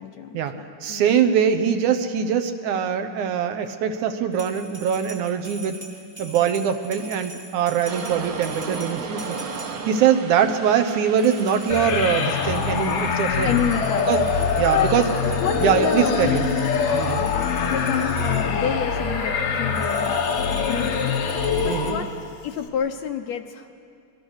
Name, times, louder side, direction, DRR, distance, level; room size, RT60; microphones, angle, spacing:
voice 1, 0.0-1.2 13.4-14.2 14.7-14.9 15.4-16.3 17.7-20.2 20.5-21.4 21.6-22.1 22.4-23.7, left 8 dB, 70° left, 6 dB, 1.8 m, -29 dB
voice 2, 0.8-5.8 6.2-9.4 9.9-13.6 14.1-14.3 14.6-15.1 15.6-16.5 16.9-17.3 21.7-22.0, right 8 dB, 75° right, 7 dB, 2.4 m, -22 dB
sound 1, 4.3-10.0 11.2-18.5 19.7-21.9, right 1 dB, 5° right, 1.3 m, -42 dB
sound 2, 7.9-14.6, right 4 dB, 50° right, 1.9 m, -36 dB
sound 3, 11.7-22.3, left 5 dB, 85° left, 3.1 m, -24 dB
27.0 x 22.0 x 6.4 m, 2.4 s
omnidirectional pair, 3.6 m